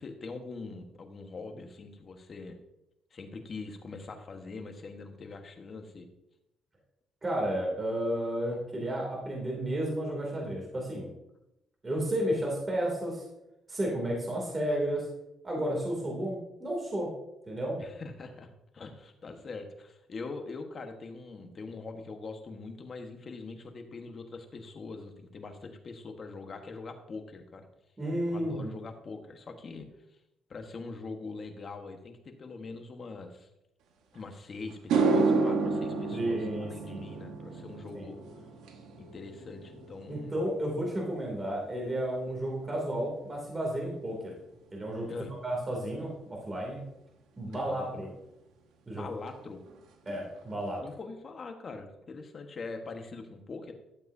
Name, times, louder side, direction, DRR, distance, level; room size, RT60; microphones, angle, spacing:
voice 1, 0.0-2.6 3.1-6.1 17.8-27.7 28.3-29.9 30.5-33.5 34.1-38.2 39.0-40.4 45.1-45.3 47.5-48.0 48.9-49.6 50.8-53.7, left 3 dB, 45° left, 5 dB, 1.3 m, -43 dB
voice 2, 7.2-11.1 11.8-13.2 13.7-15.1 15.4-17.1 17.5-17.8 28.0-28.8 36.1-37.0 37.9-38.1 40.1-44.3 44.7-45.1 45.4-46.8 47.4-48.1 48.9-49.1 50.1-50.8, right 1 dB, 25° right, -2 dB, 2.7 m, -32 dB
sound 1, 34.2-34.3 34.7-43.2 43.5-43.9 47.5-47.6 49.3-49.4 49.7-49.8 50.1-50.6, right 3 dB, 90° right, 1.1 m, -32 dB
12.0 x 7.5 x 2.7 m, 0.87 s
cardioid pair, 90°, 0 cm